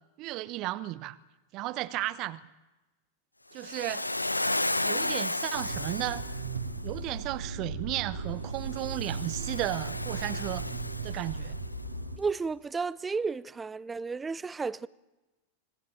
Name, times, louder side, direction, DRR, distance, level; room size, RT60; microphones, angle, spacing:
voice 1, 0.2-1.2 1.5-2.4 3.5-4.1 4.8-6.2 6.8-10.7 11.0-11.5, right 16 dB, 40° right, 1.1 m, -34 dB
Waves surf, 3.6-6.8 8.6-11.7, left 2 dB, 85° left, 0.8 m, -33 dB
Motor vehicle (road), 5.5-12.2, right 4 dB, 70° right, 2.2 m, -37 dB
voice 2, 12.2-14.9, right 4 dB, 15° right, 0.7 m, -32 dB
25.5 x 19.0 x 9.0 m
figure-of-eight pair, 90°, 0 cm